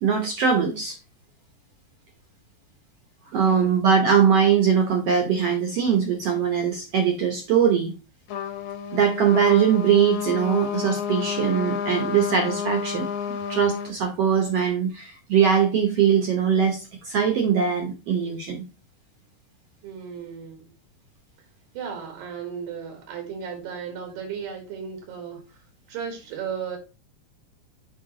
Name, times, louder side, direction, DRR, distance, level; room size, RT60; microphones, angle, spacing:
voice 1, 0.0-1.0 3.3-7.9 8.9-18.6, right 7 dB, 70° right, 1.5 m, -21 dB
voice 2, 3.3-3.8 19.8-20.7 21.7-26.8, right 7 dB, 90° right, 3.4 m, -35 dB
Trumpet, 8.3-13.9, left 7 dB, 65° left, 1.9 m, -30 dB
6.9 x 4.8 x 3.7 m
omnidirectional pair, 3.9 m